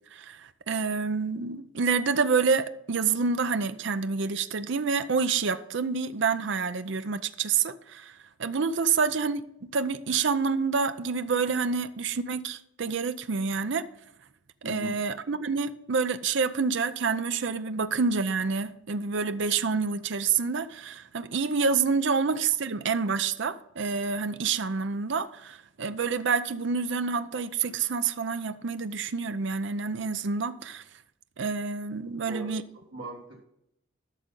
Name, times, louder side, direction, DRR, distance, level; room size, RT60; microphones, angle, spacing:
voice 1, 0.1-9.4 9.7-13.9 14.7-30.8 31.4-32.6, right 5 dB, 65° right, 0.6 m, -28 dB
voice 2, 32.3-33.5, right 2 dB, 90° right, 1.6 m, -40 dB
12.5 x 6.5 x 3.8 m
head